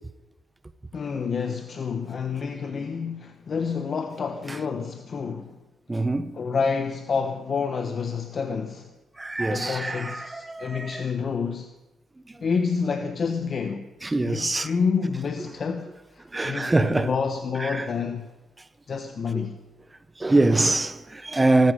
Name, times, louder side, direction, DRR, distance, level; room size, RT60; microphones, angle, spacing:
voice 1, 0.9-5.6 6.3-8.9 9.5-11.7 12.4-13.9 14.2-18.3 18.9-19.6, left 5 dB, 45° left, 1.1 m, -28 dB
voice 2, 5.9-6.3 9.2-11.0 14.0-14.7 16.3-17.1 17.6-17.8 19.3-19.4 20.2-21.7, right 2 dB, 15° right, 1.1 m, -24 dB
19.5 x 14.0 x 5.2 m
cardioid pair, 90°, 0 cm